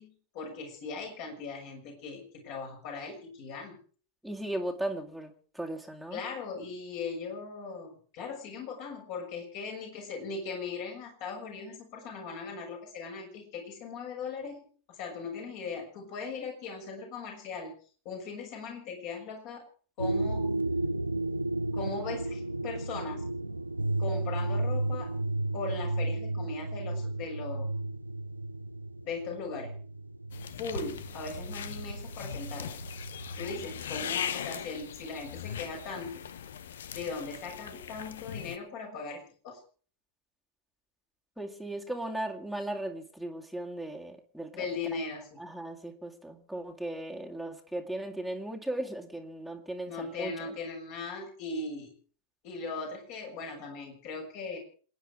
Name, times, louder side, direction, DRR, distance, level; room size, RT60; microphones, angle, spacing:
voice 1, 0.0-3.8 6.1-17.7 18.0-19.6 20.0-20.5 21.7-23.2 24.0-25.1 25.5-27.7 29.0-29.8 30.6-32.7 33.3-36.1 36.9-39.6 44.5-45.4 49.9-51.9 52.4-54.6, left 4 dB, 45° left, 1 dB, 6.5 m, -39 dB
voice 2, 4.2-6.2 41.4-44.7 45.4-50.5, right 1 dB, ahead, 2 dB, 2.2 m, -37 dB
sound 1, 20.0-33.8, right 2 dB, 85° right, 0.6 m, -33 dB
sound 2, 30.3-38.6, left 8 dB, 60° left, 1.0 m, -40 dB
27.5 x 10.0 x 4.8 m, 0.43 s
figure-of-eight pair, 90°, 0 cm